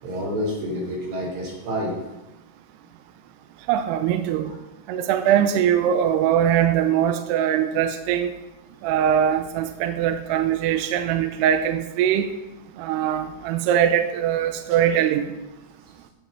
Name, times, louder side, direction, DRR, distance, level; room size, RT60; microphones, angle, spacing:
voice 1, 0.0-1.9 5.3-5.4 14.9-15.0, equal, 65° right, -4 dB, 6.3 m, -28 dB
voice 2, 3.7-4.5 4.9-8.3 8.8-12.3 12.8-15.3, right 9 dB, 85° right, 7 dB, 2.5 m, -21 dB
15.5 x 5.7 x 6.1 m, 0.97 s
omnidirectional pair, 5.5 m